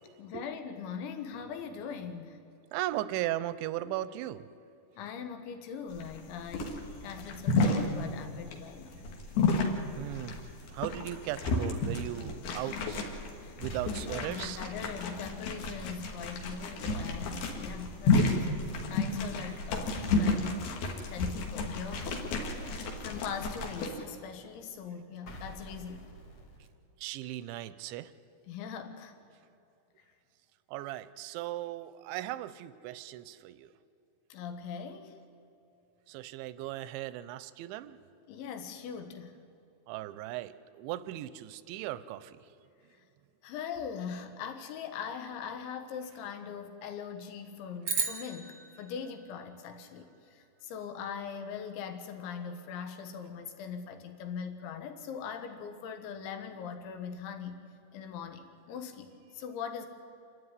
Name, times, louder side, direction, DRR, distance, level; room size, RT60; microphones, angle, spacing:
voice 1, 0.2-2.4 5.0-9.0 12.6-12.8 13.4-22.1 23.0-26.0 28.5-29.2 34.3-35.2 38.3-39.4 43.4-57.6 57.9-59.1 59.3-59.9, left 7 dB, 80° left, 7 dB, 3.8 m, -41 dB
voice 2, 2.7-4.5 10.0-13.0 13.6-14.7 27.0-28.1 30.7-33.7 36.1-38.0 39.9-42.4, right 14 dB, 85° right, 15 dB, 3.0 m, -37 dB
sound 1, 5.9-23.9, left 3 dB, 65° left, 3.8 m, -32 dB
sound 2, 13.7-14.4 16.8-17.5 19.9-20.7 21.9-23.3 25.3-26.7, right 2 dB, 45° left, 2.8 m, -45 dB
sound 3, 47.8-50.3, right 5 dB, 45° right, 1.6 m, -36 dB
27.5 x 13.0 x 9.8 m, 2.8 s
omnidirectional pair, 5.3 m